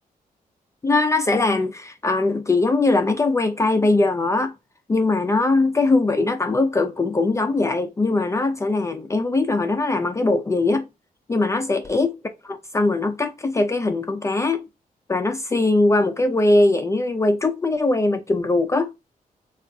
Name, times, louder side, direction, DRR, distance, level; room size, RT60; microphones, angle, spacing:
voice 1, 0.8-4.5 4.9-10.9 11.3-12.2 12.4-14.6 15.1-18.9, left 2 dB, 20° left, 0.3 m, -21 dB
3.4 x 2.3 x 2.5 m
cardioid pair, 110°, 15 cm